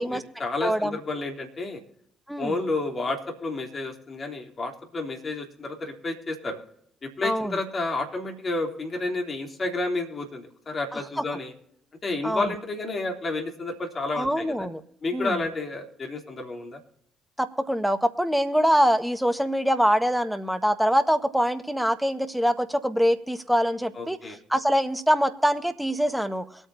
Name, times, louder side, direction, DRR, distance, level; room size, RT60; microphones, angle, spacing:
voice 1, 0.0-1.8 2.4-6.6 7.0-11.5 12.0-14.7 15.0-16.8 24.0-24.4, left 2 dB, 40° left, 1 dB, 3.4 m, -31 dB
voice 2, 0.6-1.0 2.3-2.5 7.2-7.5 11.2-11.3 12.2-12.5 14.1-14.8 15.1-15.4 17.4-24.2 24.5-26.5, equal, 5° right, 8 dB, 1.6 m, -24 dB
23.0 x 9.0 x 2.8 m, 0.71 s
hypercardioid pair, 45°, 0 cm